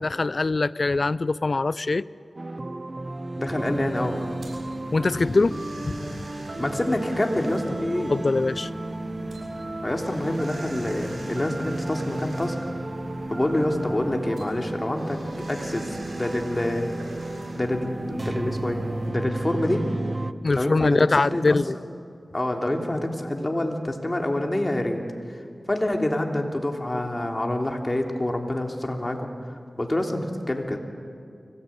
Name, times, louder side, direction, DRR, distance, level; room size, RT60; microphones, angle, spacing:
voice 1, 0.0-2.1 4.9-6.2 8.1-8.7 20.4-21.8, left 3 dB, 60° left, 19 dB, 0.5 m, -23 dB
sound 1, 2.4-20.3, right 2 dB, 45° right, 0.8 m, -33 dB
voice 2, 3.4-4.2 6.6-8.1 9.8-12.5 13.3-15.2 15.5-16.9 17.5-19.9 20.5-21.5 22.3-25.0 25.3-25.4 25.7-30.8, left 1 dB, 30° left, 2 dB, 3.2 m, -27 dB
sound 2, 3.5-19.1, left 1 dB, 75° right, 7.0 m, -42 dB
25.0 x 17.5 x 8.7 m, 2.4 s
cardioid pair, 40°, 0 cm